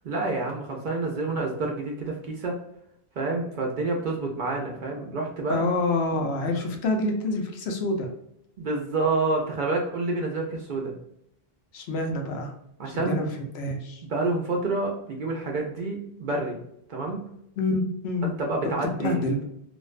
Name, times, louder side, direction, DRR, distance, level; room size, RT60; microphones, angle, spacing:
voice 1, 0.0-2.6 3.2-5.6 8.6-10.9 12.8-13.3 14.1-16.6 16.9-17.2 18.2-19.2, right 3 dB, 60° right, 0 dB, 0.6 m, -28 dB
voice 2, 5.5-8.1 11.7-12.5 12.9-13.3 13.5-14.0 17.6-18.3 18.8-19.4, left 2 dB, 75° left, 3 dB, 0.8 m, -27 dB
2.5 x 2.1 x 2.4 m, 0.78 s
omnidirectional pair, 1.1 m